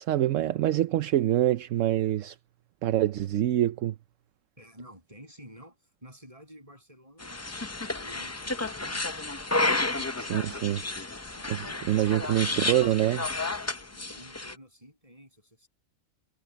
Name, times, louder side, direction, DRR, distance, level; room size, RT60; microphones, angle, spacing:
voice 1, 0.0-2.4 2.8-3.9 10.2-10.8 11.5-13.3, right 13 dB, 70° right, 1.0 m, -25 dB
voice 2, 4.6-9.1 9.5-11.0 11.3-12.6 13.6-15.7, equal, 25° right, 7.8 m, -52 dB
sound 1, 7.2-14.5, left 2 dB, 20° left, 0.4 m, -31 dB
omnidirectional pair, 1.4 m